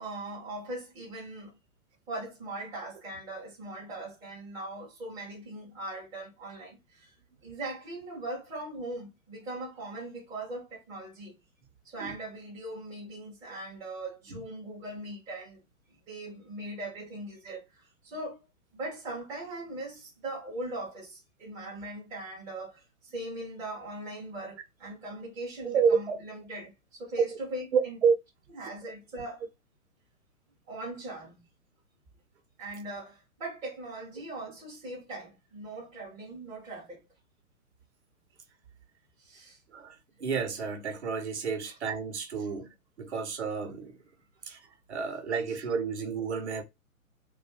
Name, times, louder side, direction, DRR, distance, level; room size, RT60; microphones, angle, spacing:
voice 1, 0.0-1.5 2.1-7.1 7.4-11.4 11.8-15.6 16.1-18.4 18.7-22.8 23.1-28.0 28.5-29.4 30.7-31.5 32.6-37.0 39.2-39.6 41.6-41.8 42.3-42.5 45.5-45.6, right 2 dB, 10° right, 0.5 m, -40 dB
voice 2, 25.6-26.2 27.7-28.2 28.8-28.9 39.7-39.9 40.2-42.7 43.0-44.0 44.5-44.6 44.9-46.6, right 6 dB, 50° right, 0.8 m, -29 dB
2.4 x 2.2 x 2.6 m
figure-of-eight pair, 125°, 43 cm